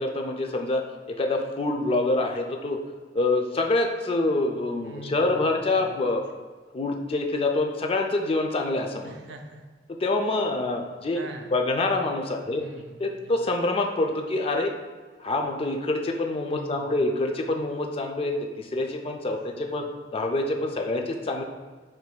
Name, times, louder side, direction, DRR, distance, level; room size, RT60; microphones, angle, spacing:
voice 1, 0.0-2.8 3.1-6.2 6.7-9.1 9.9-11.2 11.5-12.6 13.0-14.7 15.2-19.9 20.1-21.4, left 2 dB, 35° left, 3 dB, 0.4 m, -26 dB
voice 2, 4.8-6.0 9.0-9.6 11.1-11.5 12.6-13.3 16.5-16.9 19.6-19.9 20.6-20.7, right 1 dB, 80° right, 5 dB, 0.5 m, -44 dB
5.8 x 3.3 x 2.2 m, 1.4 s
head